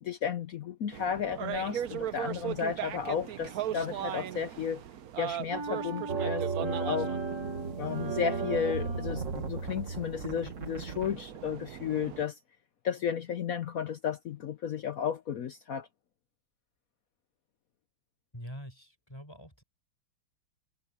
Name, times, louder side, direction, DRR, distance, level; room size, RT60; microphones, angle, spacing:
voice 1, 0.0-4.8 5.2-7.1 7.8-12.4 12.8-15.9, left 7 dB, 75° left, 0.8 m, -33 dB
sound 1, 0.9-12.2, right 10 dB, 60° right, 1.0 m, -39 dB
sound 2, 5.5-9.4, right 1 dB, 15° right, 1.6 m, -40 dB
sound 3, 6.1-11.1, right 5 dB, 35° right, 1.8 m, -35 dB
voice 2, 18.3-19.6, equal, 10° left, 5.0 m, -45 dB
omnidirectional pair, 2.4 m